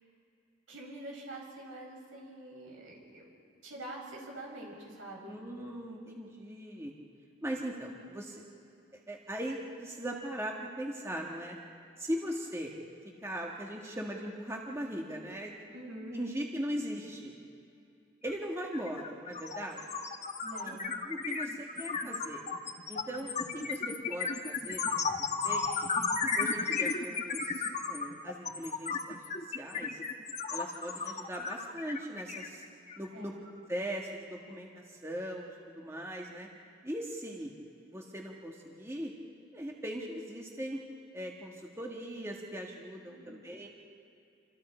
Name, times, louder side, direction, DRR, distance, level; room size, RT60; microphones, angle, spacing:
voice 1, 0.7-3.3 3.6-5.4 15.7-16.2 20.4-20.9 33.1-33.4 43.1-43.4, right 1 dB, 85° right, -2 dB, 6.6 m, -45 dB
voice 2, 5.3-6.9 7.4-8.4 8.9-11.6 12.0-12.7 13.2-15.6 16.1-17.3 18.2-19.9 21.0-22.4 22.9-24.8 25.2-25.7 26.3-29.2 29.6-30.0 30.5-32.6 33.0-33.3 33.7-36.5 36.8-37.5 37.9-39.1 39.5-40.8 41.1-43.7, equal, 15° right, -1 dB, 1.8 m, -39 dB
sound 1, 18.3-18.4 18.7-33.1, left 5 dB, 35° left, 1.2 m, -34 dB
28.5 x 25.0 x 4.5 m, 2.7 s
head